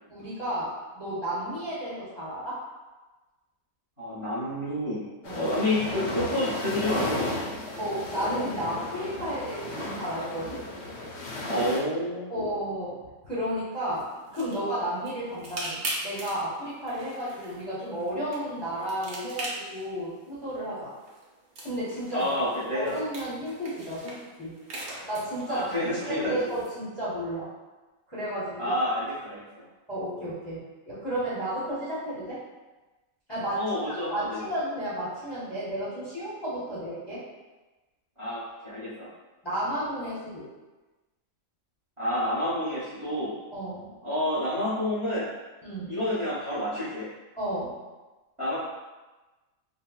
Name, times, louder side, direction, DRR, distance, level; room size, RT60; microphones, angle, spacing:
voice 1, 0.1-2.6 5.2-5.5 7.8-10.6 12.3-13.0 13.2-20.9 21.6-22.3 22.7-24.5 25.0-27.5 28.1-28.7 29.9-32.4 33.3-37.2 39.4-40.5 43.5-43.9 45.6-46.0 47.4-47.7, right 1 dB, 25° left, -11 dB, 0.7 m, -33 dB
voice 2, 4.0-5.0 5.3-7.3 11.5-12.5 22.1-23.0 25.5-26.4 28.6-29.7 33.5-34.5 38.2-39.1 42.0-43.3 44.0-45.3 45.9-47.1 48.4-48.5, left 1 dB, 30° right, -11 dB, 0.7 m, -29 dB
sound 1, 5.2-11.8, left 2 dB, 65° left, 0.7 m, -34 dB
sound 2, 13.7-26.8, right 2 dB, 80° right, 1.2 m, -41 dB
3.6 x 2.1 x 2.2 m, 1.2 s
omnidirectional pair, 1.5 m